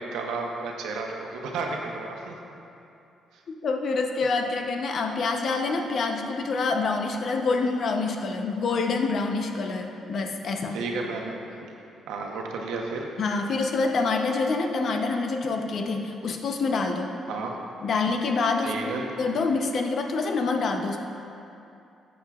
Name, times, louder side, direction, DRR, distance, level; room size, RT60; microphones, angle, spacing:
voice 1, 0.0-2.3 3.3-3.4 10.7-11.6 12.1-13.1 17.3-17.5 18.6-19.0, right 3 dB, 90° right, 1 dB, 0.9 m, -32 dB
voice 2, 3.6-10.8 13.2-17.1 17.8-18.9 19.2-21.0, left 3 dB, 55° left, 4 dB, 0.8 m, -26 dB
12.5 x 7.2 x 2.4 m, 2.7 s
cardioid pair, 90°, 0 cm